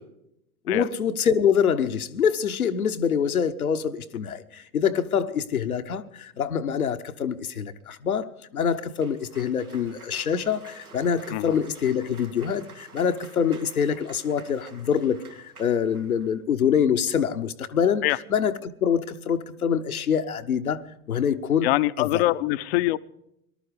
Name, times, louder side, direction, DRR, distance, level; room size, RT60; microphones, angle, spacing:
voice 1, 0.7-18.0 18.3-20.8 21.1-21.7 22.0-22.2, left 7 dB, 80° left, 1.1 m, -25 dB
Cheering / Applause, 8.6-16.3, right 4 dB, 90° right, 2.5 m, -49 dB
voice 2, 21.6-23.0, left 17 dB, 45° left, 0.7 m, -23 dB
18.5 x 12.5 x 5.0 m
figure-of-eight pair, 90°, 43 cm